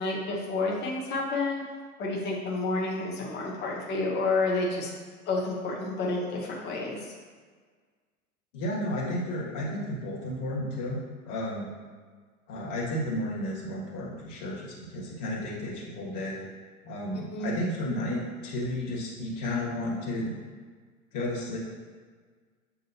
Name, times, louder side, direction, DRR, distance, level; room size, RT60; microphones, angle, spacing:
voice 1, 0.0-1.6 2.0-4.9 5.3-7.0 17.3-17.5, left 3 dB, 25° left, -3 dB, 0.8 m, -29 dB
voice 2, 8.5-11.0 11.3-11.7 12.5-16.5 16.8-20.4 21.1-21.6, left 1 dB, 40° left, -5 dB, 1.5 m, -32 dB
7.2 x 2.5 x 2.8 m, 1.6 s
figure-of-eight pair, 95°, 44 cm